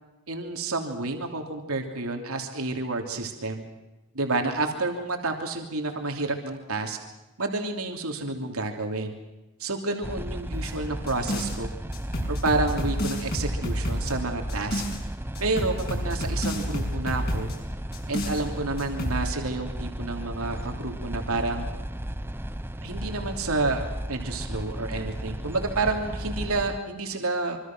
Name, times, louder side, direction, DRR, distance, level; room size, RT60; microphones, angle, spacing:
voice 1, 0.3-3.6 4.1-7.0 7.4-9.1 9.6-11.7 12.3-14.8 15.4-17.5 18.1-21.7 22.8-27.6, right 3 dB, 80° right, 3 dB, 3.0 m, -29 dB
sound 1, 10.0-26.8, equal, 10° right, 0.8 m, -34 dB
sound 2, 10.5-11.6 11.9-15.0 15.3-17.6 17.9-18.4 18.8-19.2, equal, 45° left, 6.9 m, -30 dB
26.5 x 25.5 x 6.2 m, 1.1 s
head